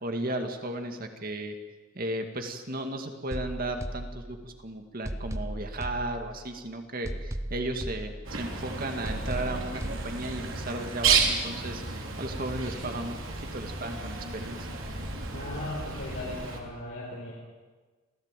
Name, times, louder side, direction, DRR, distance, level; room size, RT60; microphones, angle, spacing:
voice 1, 0.0-1.6 1.9-14.7, right 1 dB, 45° right, 5 dB, 2.2 m, -35 dB
sound 1, 3.3-4.6 5.0-6.6 7.0-8.6 9.0-10.6 11.0-11.3, right 1 dB, 15° right, 1.0 m, -37 dB
Bird, 8.2-16.6, right 5 dB, 85° right, 3.7 m, -32 dB
voice 2, 15.3-17.3, left 1 dB, 65° left, -4 dB, 4.8 m, -37 dB
27.0 x 16.5 x 9.1 m, 1.4 s
head